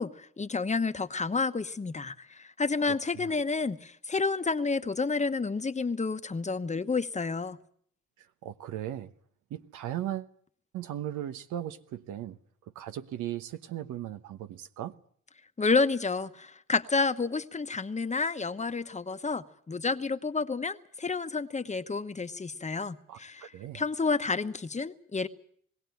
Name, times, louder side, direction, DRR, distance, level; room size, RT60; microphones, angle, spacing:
voice 1, 0.0-7.6 15.6-25.3, left 4 dB, 25° left, 1.1 m, -30 dB
voice 2, 2.9-3.3 8.4-9.1 9.5-10.3 10.7-12.4 12.7-14.9 23.1-23.8, right 12 dB, 85° right, 1.1 m, -37 dB
21.0 x 16.5 x 9.2 m
cardioid pair, 90°, 30 cm